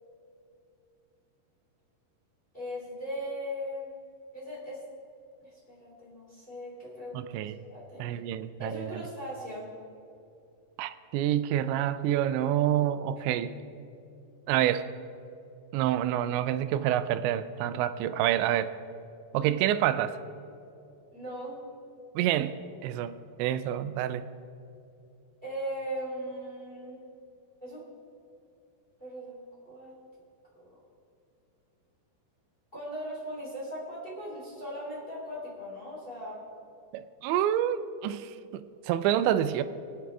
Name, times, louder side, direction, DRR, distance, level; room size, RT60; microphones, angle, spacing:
voice 1, 2.5-3.9 4.3-4.8 5.5-7.3 7.7-8.0 8.6-9.7 21.1-21.6 25.4-27.0 27.6-27.9 29.0-29.4 29.6-29.9 30.5-30.8 32.7-36.4, equal, 15° left, -6 dB, 2.8 m, -38 dB
voice 2, 7.1-7.6 8.0-9.0 10.8-13.5 14.5-14.9 15.7-18.7 19.3-20.2 22.2-22.6 22.8-24.2 36.9-39.6, right 11 dB, 90° right, 12 dB, 2.9 m, -28 dB
24.0 x 8.8 x 3.4 m, 2.7 s
omnidirectional pair, 5.1 m